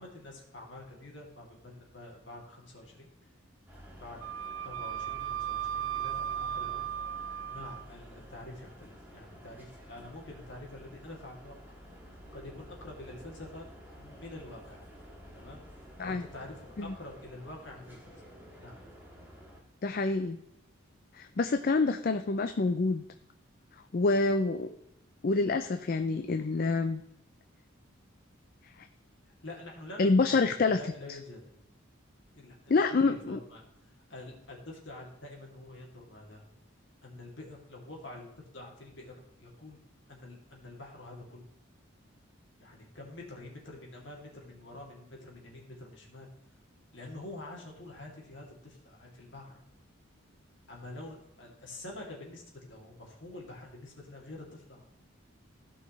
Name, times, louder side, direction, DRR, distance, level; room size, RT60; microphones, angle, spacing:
voice 1, 0.0-3.1 4.0-4.2 4.6-6.9 7.4-11.6 12.3-13.7 14.0-14.8 15.3-15.6 16.0-18.1 18.6-18.8 29.2-31.5 32.3-32.7 33.0-33.6 34.1-36.4 37.0-38.3 38.5-39.8 40.1-41.5 42.6-46.3 46.9-49.6 50.7-54.9, left 2 dB, 60° left, -2 dB, 2.7 m, -47 dB
sound 1, 3.7-19.6, equal, 10° right, 2.0 m, -51 dB
Wind instrument woodwind instrument, 4.2-7.8, right 10 dB, 75° right, 0.4 m, -36 dB
voice 2, 19.8-20.4 21.1-23.0 23.9-24.7 25.2-27.0 28.8-28.9 30.0-30.8 32.7-33.4, left 3 dB, 45° left, 8 dB, 0.4 m, -27 dB
16.0 x 5.6 x 3.2 m, 0.82 s
head